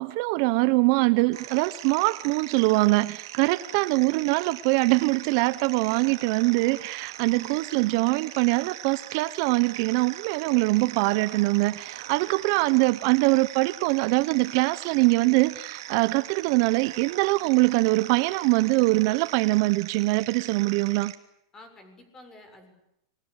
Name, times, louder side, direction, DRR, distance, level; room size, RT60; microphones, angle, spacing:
voice 1, 0.0-21.1, right 23 dB, 50° right, 15 dB, 0.9 m, -23 dB
sound 1, 1.3-21.2, right 13 dB, 70° right, 2.8 m, -41 dB
voice 2, 7.3-8.1 10.6-10.9 12.1-12.7 21.5-22.7, left 2 dB, 20° left, 8 dB, 6.9 m, -53 dB
27.0 x 23.0 x 8.2 m, 0.82 s
supercardioid pair, 145°, 2 cm